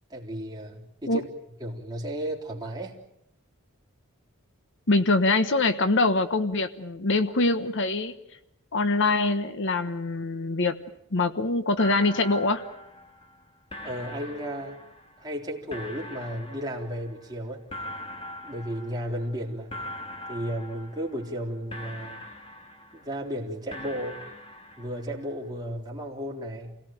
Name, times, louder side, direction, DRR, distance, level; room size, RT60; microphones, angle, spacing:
voice 1, 0.1-1.3 1.6-3.0 13.8-14.8 15.2-17.6 18.4-19.7 20.3-22.2 22.9-24.2 24.8-26.8, equal, 20° right, -3 dB, 3.7 m, -34 dB
voice 2, 4.9-8.1 8.7-10.8 11.1-12.6, left 2 dB, 55° left, 11 dB, 1.2 m, -24 dB
sound 1, 11.8-13.4 13.7-15.3 15.7-17.3 17.7-19.4 19.7-21.4 21.7-23.3 23.7-25.3, left 1 dB, 25° left, 2.3 m, -42 dB
28.5 x 18.0 x 9.1 m, 0.84 s
head